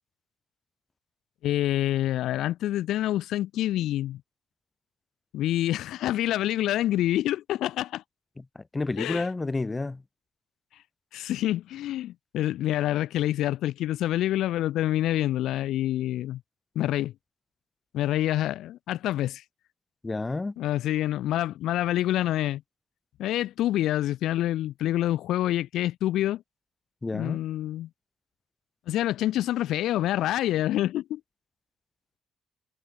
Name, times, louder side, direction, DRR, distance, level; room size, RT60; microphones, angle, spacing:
voice 1, 1.4-4.2 5.3-8.0 9.0-9.3 11.1-16.4 16.7-17.1 17.9-19.4 20.6-22.6 23.2-26.4 27.1-27.9 28.9-31.2, left 13 dB, 85° left, 2.5 m, -27 dB
voice 2, 8.5-10.0 20.0-20.5 27.0-27.4, left 3 dB, 20° left, 3.4 m, -30 dB
cardioid pair, 90°, 0 cm